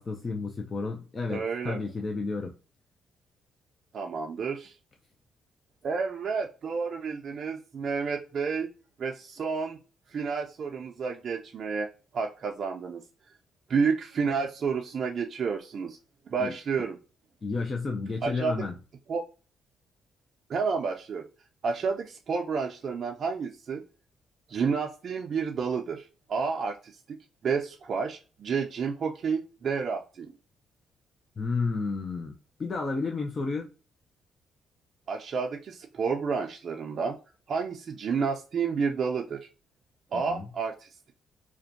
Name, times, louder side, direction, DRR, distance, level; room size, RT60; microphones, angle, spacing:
voice 1, 0.0-2.6 16.4-16.5 17.4-18.8 31.4-32.3 32.6-33.7 40.1-40.5, left 4 dB, 35° left, 0.4 m, -31 dB
voice 2, 1.3-1.8 3.9-4.7 5.8-8.7 9.0-9.8 10.1-11.9 12.1-13.0 13.7-16.0 16.3-17.0 18.2-18.6 19.1-19.3 20.5-21.3 21.6-23.8 24.5-27.2 27.4-30.3 35.1-37.2 37.5-39.5 40.1-41.1, right 5 dB, 55° right, 0.4 m, -30 dB
2.5 x 2.2 x 2.5 m
cardioid pair, 90°, 0 cm